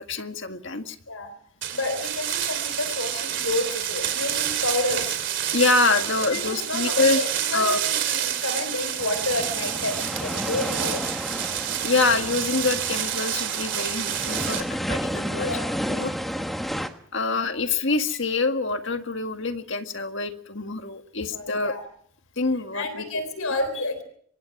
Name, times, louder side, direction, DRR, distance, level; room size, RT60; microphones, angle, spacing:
voice 1, 0.0-1.0 5.5-7.2 7.5-7.8 11.8-15.5 15.9-16.1 17.1-21.7 22.4-23.0 23.4-23.5, left 3 dB, 55° left, 6 dB, 1.9 m, -25 dB
sound 1, 1.6-14.6, right 10 dB, 55° right, 3.4 m, -28 dB
voice 2, 1.7-5.1 6.3-11.0 15.3-15.7 17.2-17.4 21.3-21.8 22.7-24.0, left 2 dB, 70° left, 11 dB, 3.7 m, -30 dB
sound 2, 9.0-16.9, equal, ahead, 1.4 m, -32 dB
25.0 x 22.5 x 6.0 m, 0.64 s
head